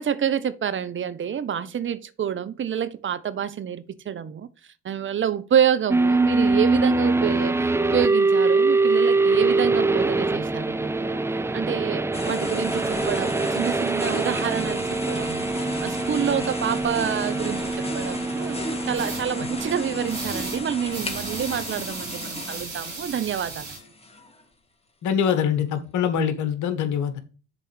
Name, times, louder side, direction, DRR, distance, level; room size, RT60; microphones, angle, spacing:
voice 1, 0.0-4.5 4.8-11.2 11.5-17.7 17.9-18.6 18.9-23.7, right 9 dB, 35° right, 0.8 m, -27 dB
sound 1, 5.9-21.6, right 3 dB, 10° right, 0.5 m, -24 dB
sound 2, 12.1-24.4, left 2 dB, 15° left, 1.8 m, -36 dB
sound 3, 19.0-19.2 20.1-20.6 20.9-23.8, right 4 dB, 85° right, 2.7 m, -36 dB
voice 2, 25.0-27.2, left 8 dB, 60° left, 1.6 m, -24 dB
6.8 x 4.1 x 6.1 m
hypercardioid pair, 60°, 34 cm